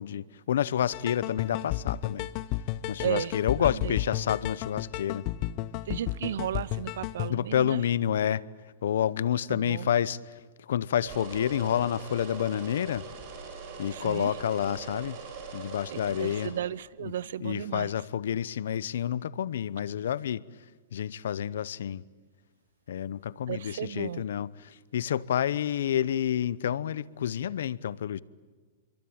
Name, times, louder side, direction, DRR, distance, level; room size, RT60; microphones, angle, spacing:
voice 1, 0.0-2.3 2.9-5.3 7.3-8.4 8.8-13.0 13.8-15.2 15.5-16.5 17.0-17.1 17.4-20.4 20.9-22.0 22.9-28.2, left 10 dB, 80° left, 0.8 m, -29 dB
sound 1, 0.9-7.3, left 14 dB, 35° left, 0.8 m, -33 dB
voice 2, 3.0-4.0 5.8-7.9 9.5-9.9 13.9-14.3 15.9-17.9 23.5-24.2, right 10 dB, 75° right, 0.8 m, -34 dB
sound 2, 11.0-16.5, right 5 dB, 35° right, 7.4 m, -42 dB
26.5 x 23.5 x 8.8 m
hypercardioid pair, 150°, 0 cm